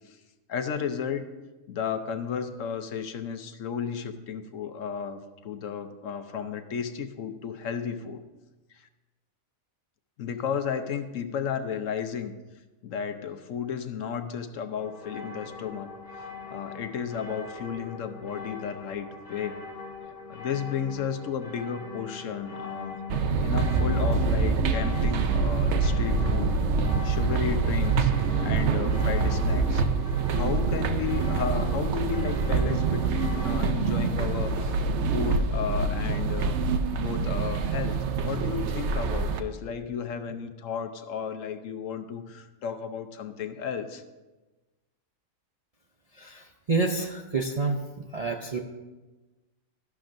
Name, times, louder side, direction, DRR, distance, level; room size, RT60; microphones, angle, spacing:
voice 1, 0.5-1.3 1.7-8.2 8.7-8.9 10.2-12.3 12.8-15.9 16.2-19.6 20.3-23.0 23.4-26.6 27.0-28.1 28.4-29.8 30.3-34.8 35.1-36.6 36.9-38.0 38.2-44.0, left 7 dB, 70° left, 8 dB, 1.1 m, -33 dB
sound 1, 14.8-33.5, left 5 dB, 35° left, 2.1 m, -41 dB
sound 2, 23.1-39.4, right 4 dB, 60° right, 0.9 m, -25 dB
voice 2, 46.2-47.8 48.1-48.6, right 4 dB, 45° right, 1 dB, 0.5 m, -28 dB
13.0 x 11.0 x 2.6 m, 1.2 s
omnidirectional pair, 1.4 m